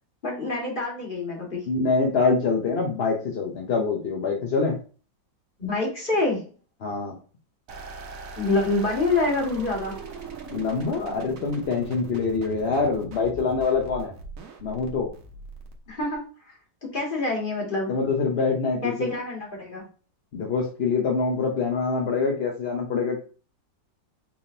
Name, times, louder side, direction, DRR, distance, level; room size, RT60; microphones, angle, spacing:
voice 1, 0.2-1.6 5.6-6.5 8.4-10.0 15.9-16.5 16.8-17.9 18.8-19.8, left 2 dB, 30° left, -2 dB, 1.9 m, -26 dB
voice 2, 1.7-4.8 6.8-7.1 10.5-14.1 14.6-15.1 17.9-19.1 20.3-23.2, left 4 dB, 50° left, 0 dB, 0.8 m, -25 dB
sound 1, 7.7-16.1, right 4 dB, 55° right, 1.1 m, -40 dB
5.2 x 3.5 x 2.7 m, 0.37 s
omnidirectional pair, 1.9 m